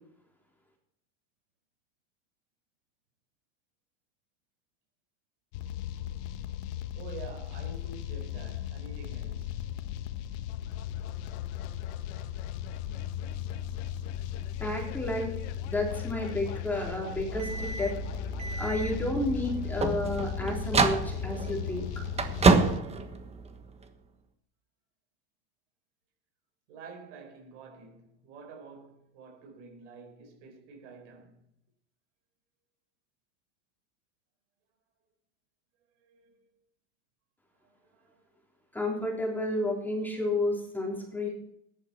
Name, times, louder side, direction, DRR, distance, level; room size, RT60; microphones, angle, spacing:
sound 1, 5.5-22.8, left 10 dB, 70° left, 1.2 m, -37 dB
voice 1, 6.9-9.6 26.7-31.4 36.0-36.4 37.7-38.2 39.2-39.3, right 4 dB, 75° right, 4.5 m, -48 dB
voice 2, 14.6-15.3 15.7-17.9 18.6-21.9 38.7-41.3, left 1 dB, 5° left, 3.5 m, -31 dB
sound 2, 17.3-23.9, right 4 dB, 20° right, 1.3 m, -29 dB
14.0 x 11.0 x 4.4 m
supercardioid pair, 135°, 35 cm